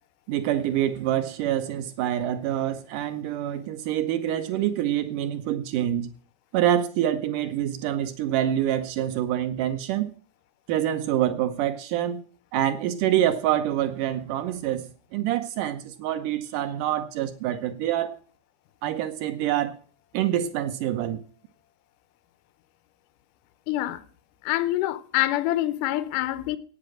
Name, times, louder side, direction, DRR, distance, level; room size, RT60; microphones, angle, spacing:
voice 1, 0.3-6.1 6.5-10.1 10.7-12.2 12.5-18.2 18.8-19.7 20.1-21.2, right 11 dB, 75° right, 1.9 m, -26 dB
voice 2, 23.7-24.0 24.4-26.6, left 15 dB, 85° left, 1.8 m, -26 dB
9.4 x 8.6 x 7.8 m
omnidirectional pair, 4.8 m